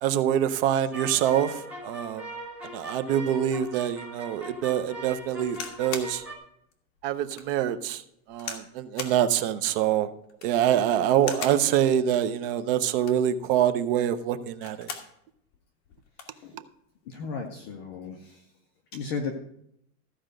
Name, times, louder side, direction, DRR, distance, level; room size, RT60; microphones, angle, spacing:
voice 1, 0.0-2.3 2.7-6.2 7.0-8.0 8.3-10.1 10.4-14.9 16.5-16.6, right 10 dB, 40° right, 12 dB, 0.6 m, -25 dB
sound 1, 0.9-6.3, right 1 dB, 5° right, 1.5 m, -40 dB
sound 2, 5.5-6.1 6.7-6.8 7.3-7.5 8.4-8.7 9.0-9.2 10.2-10.6 11.2-11.6 12.9-13.3 14.4-15.1 15.5-15.6 15.8-16.4 17.2-17.5, left 6 dB, 35° left, 1.6 m, -38 dB
voice 2, 17.1-18.4 18.9-19.4, left 5 dB, 20° left, 4 dB, 0.3 m, -34 dB
14.5 x 5.0 x 6.4 m, 0.74 s
supercardioid pair, 160°, 44 cm